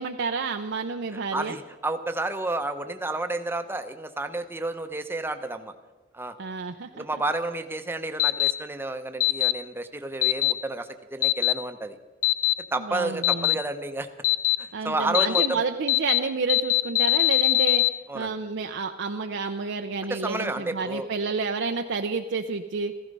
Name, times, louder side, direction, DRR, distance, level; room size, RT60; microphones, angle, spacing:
voice 1, 0.0-1.6 6.4-7.0 12.9-13.5 14.7-17.8 18.1-22.9, right 4 dB, 65° right, 4 dB, 0.6 m, -30 dB
voice 2, 1.1-5.7 6.1-6.3 6.9-12.0 12.7-14.1 14.6-15.6 18.1-18.3 20.1-21.1, right 2 dB, 10° right, 7 dB, 0.8 m, -31 dB
sound 1, 8.2-8.5 9.2-9.5 10.2-10.5 11.2-11.5 12.2-12.5 13.2-13.5 14.2-14.6 15.1-15.5 15.9-16.2 16.5-17.9, left 20 dB, 45° left, 0.5 m, -21 dB
15.0 x 14.5 x 5.4 m, 1.2 s
head